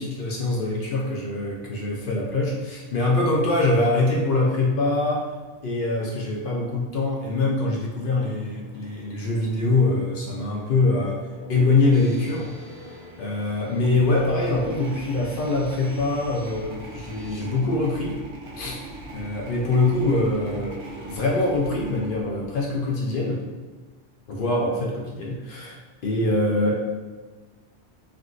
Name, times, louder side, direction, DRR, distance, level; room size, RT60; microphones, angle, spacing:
voice 1, 0.0-5.3 5.6-11.2 11.5-12.5 13.2-18.2 18.6-18.8 19.1-23.4 24.3-26.7, left 2 dB, 55° left, -2 dB, 0.6 m, -24 dB
sound 1, 8.0-21.1, left 1 dB, 55° right, 0.5 m, -50 dB
sound 2, 11.9-17.4, equal, 80° left, 1.5 m, -49 dB
sound 3, 13.7-23.1, right 1 dB, 80° right, 1.0 m, -40 dB
3.6 x 2.5 x 2.4 m, 1.3 s
omnidirectional pair, 1.3 m